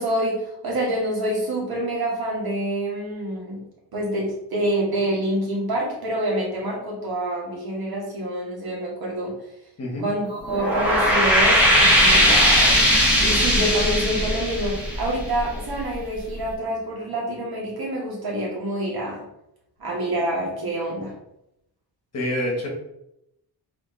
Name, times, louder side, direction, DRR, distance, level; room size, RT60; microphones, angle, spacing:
voice 1, 0.0-3.6 3.9-9.3 10.0-12.8 13.2-19.2 19.8-21.1, right 1 dB, 60° right, -3 dB, 1.6 m, -27 dB
sound 1, 10.4-15.7, equal, 5° right, 1.1 m, -18 dB
voice 2, 22.1-22.7, left 1 dB, 35° left, -2 dB, 1.3 m, -26 dB
4.1 x 3.1 x 3.2 m, 0.82 s
wide cardioid pair, 150°, 42 cm